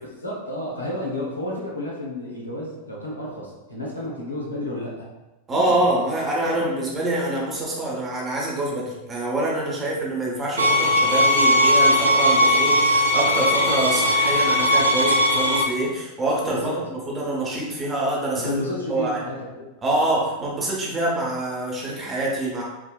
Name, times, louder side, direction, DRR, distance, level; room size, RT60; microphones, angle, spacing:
voice 1, 0.0-5.1 5.5-5.8 6.4-6.7 9.8-9.9 16.5-16.8 18.3-19.7, left 1 dB, 80° left, -4 dB, 0.8 m, -31 dB
voice 2, 5.5-18.5 18.9-19.2 19.8-22.6, right 1 dB, 20° right, -4 dB, 0.9 m, -25 dB
sound 1, 10.6-15.6, equal, 75° right, 0.4 m, -18 dB
3.6 x 2.6 x 2.3 m, 1.0 s
figure-of-eight pair, 90°, 0 cm